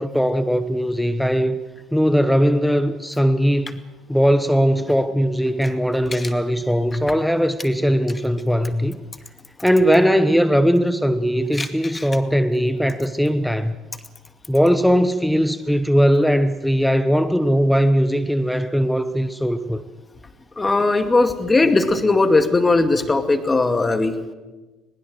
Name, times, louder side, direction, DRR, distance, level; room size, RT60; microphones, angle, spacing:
voice 1, 0.0-1.6 1.9-3.8 4.1-9.0 9.6-13.7 14.5-19.8, equal, ahead, 1.1 m, -19 dB
voice 2, 20.6-24.2, left 3 dB, 20° left, 2.3 m, -18 dB
21.5 x 21.0 x 7.9 m
figure-of-eight pair, 60°, 0 cm